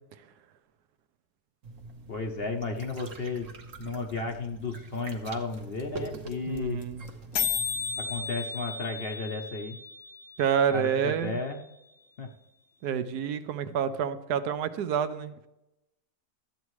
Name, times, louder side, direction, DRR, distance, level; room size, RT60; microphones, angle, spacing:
sound 1, 1.6-8.3, right 2 dB, 55° right, 1.4 m, -44 dB
voice 1, 2.1-3.5 3.8-6.8 8.0-9.8 10.7-11.6 12.2-12.3, left 3 dB, 50° left, 3 dB, 0.8 m, -33 dB
sound 2, 5.3-5.4 5.5-5.6 5.8-6.1 6.3-6.4 6.6-6.8 7.1-7.2 7.3-11.3, left 7 dB, 80° left, 1.5 m, -34 dB
voice 2, 6.5-7.0 10.4-11.4 12.8-15.5, right 8 dB, 75° right, 11 dB, 1.2 m, -28 dB
13.0 x 8.3 x 3.1 m, 0.92 s
omnidirectional pair, 1.7 m